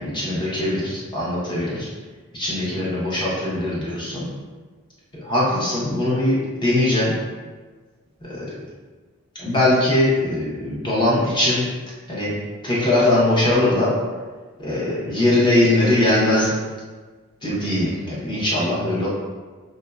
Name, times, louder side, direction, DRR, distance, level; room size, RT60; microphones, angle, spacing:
voice 1, 0.0-1.9 2.3-4.3 5.2-7.1 8.3-8.5 9.3-11.6 12.1-12.3 12.6-13.9 14.6-16.5 17.4-19.1, left 1 dB, 20° left, -7 dB, 0.7 m, -21 dB
3.0 x 2.5 x 2.2 m, 1.4 s
head